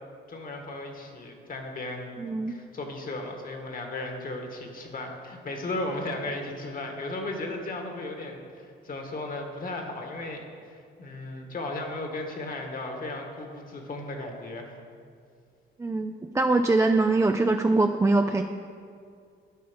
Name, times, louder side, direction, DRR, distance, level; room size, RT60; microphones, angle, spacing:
voice 1, 0.3-2.1 2.5-14.7, left 2 dB, 45° left, 3 dB, 1.6 m, -35 dB
voice 2, 2.2-2.5 15.8-18.4, right 2 dB, 15° right, 5 dB, 0.4 m, -23 dB
12.0 x 5.4 x 5.2 m, 2.2 s
cardioid pair, 90°, 20 cm